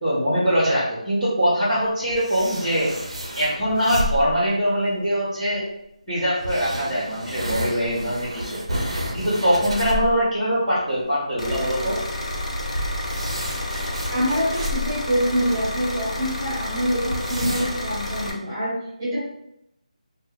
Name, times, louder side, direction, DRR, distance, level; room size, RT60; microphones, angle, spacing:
voice 1, 0.0-2.9 3.3-5.6 6.1-8.6 8.9-12.0, equal, 10° left, -15 dB, 0.9 m, -22 dB
sound 1, 1.7-4.5 5.5-5.6 6.4-10.2 10.5-10.6 11.0-11.1 11.5-15.7 16.2-16.3 16.5-16.6 17.0-17.9, equal, 50° right, 0.7 m, -31 dB
sound 2, 11.4-18.3, left 1 dB, 55° left, 0.7 m, -30 dB
voice 2, 14.1-19.2, equal, 30° right, -6 dB, 1.2 m, -25 dB
2.9 x 2.2 x 3.5 m, 0.79 s
figure-of-eight pair, 175°, 4 cm